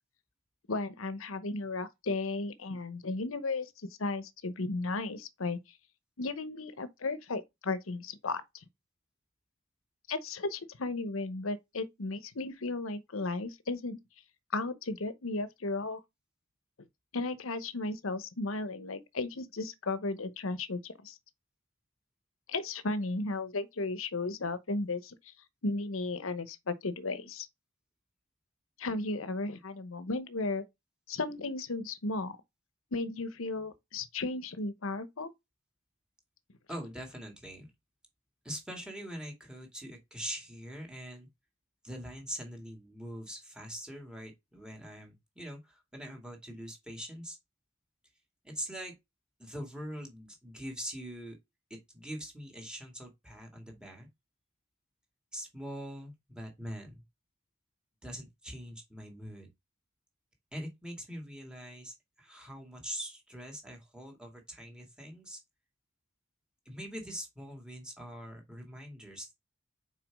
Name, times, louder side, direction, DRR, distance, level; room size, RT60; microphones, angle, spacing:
voice 1, 0.7-5.6 6.2-8.4 10.1-14.0 14.5-16.0 17.1-21.1 22.5-25.3 25.6-27.5 28.8-30.6 31.1-32.4 32.9-35.3, left 3 dB, 75° left, 0.9 m, -35 dB
voice 2, 36.7-37.7 38.4-41.3 41.8-47.4 48.4-48.9 49.4-51.4 51.7-54.1 55.3-57.0 58.0-59.5 60.5-65.4 66.7-69.3, equal, 5° right, 2.3 m, -43 dB
6.1 x 4.7 x 3.5 m
head